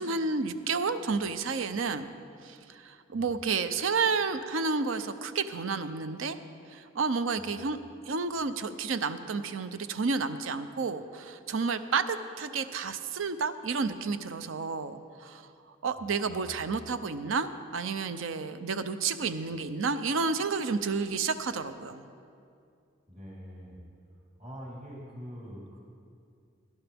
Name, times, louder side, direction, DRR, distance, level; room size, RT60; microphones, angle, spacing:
voice 1, 0.0-2.1 2.4-6.4 6.7-7.8 8.1-15.4 15.8-22.0, right 4 dB, 80° right, 11 dB, 0.6 m, -31 dB
voice 2, 16.0-16.9 23.1-23.8 24.4-25.8, equal, 40° right, -6 dB, 3.8 m, -45 dB
17.5 x 11.5 x 3.5 m, 2.4 s
head